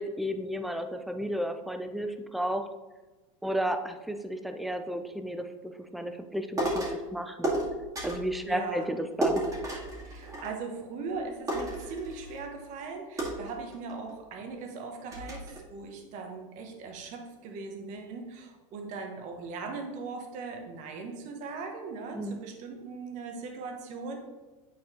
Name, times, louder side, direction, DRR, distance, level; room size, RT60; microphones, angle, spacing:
voice 1, 0.0-2.6 3.4-6.9 7.1-7.6 8.0-9.4 22.1-22.4, equal, ahead, 7 dB, 0.5 m, -33 dB
sound 1, 6.6-7.0 7.4-8.3 9.2-10.8 11.1-11.2 11.5-12.5 13.2-14.1 14.6-14.7 15.1-15.6, right 1 dB, 20° right, 2.2 m, -32 dB
voice 2, 8.5-8.9 10.0-24.2, right 4 dB, 45° right, 3 dB, 1.4 m, -39 dB
9.6 x 4.1 x 3.8 m, 1.2 s
supercardioid pair, 125°, 18 cm